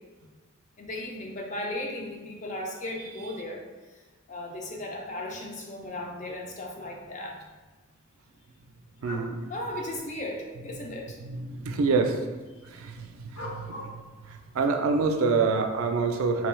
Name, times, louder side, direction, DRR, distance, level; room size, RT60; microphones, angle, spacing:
voice 1, 0.8-3.6 4.3-7.4 9.5-11.2, left 1 dB, 35° left, 0 dB, 0.4 m, -36 dB
sound 1, 9.0-9.3 10.5-10.6 13.3-13.9, left 1 dB, 85° left, 0.9 m, -39 dB
voice 2, 9.0-9.5 11.2-12.2 12.7-13.9 14.3-16.5, right 4 dB, 85° right, 5 dB, 0.4 m, -27 dB
3.0 x 2.2 x 3.1 m, 1.3 s
head